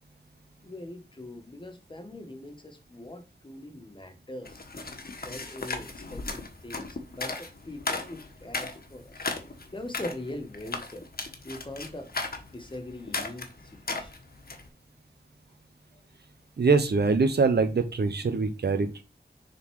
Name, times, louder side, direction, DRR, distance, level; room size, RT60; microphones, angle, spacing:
voice 1, 0.6-4.7 5.2-9.2 9.7-11.0 11.4-12.1 12.5-13.5 13.9-14.1 15.9-16.0, left 1 dB, 30° left, 1.5 m, -41 dB
sound 1, 4.4-14.7, left 3 dB, 60° left, 1.4 m, -36 dB
voice 2, 16.6-19.0, right 4 dB, 70° right, 0.9 m, -23 dB
6.8 x 4.1 x 4.7 m
wide cardioid pair, 90°, 18 cm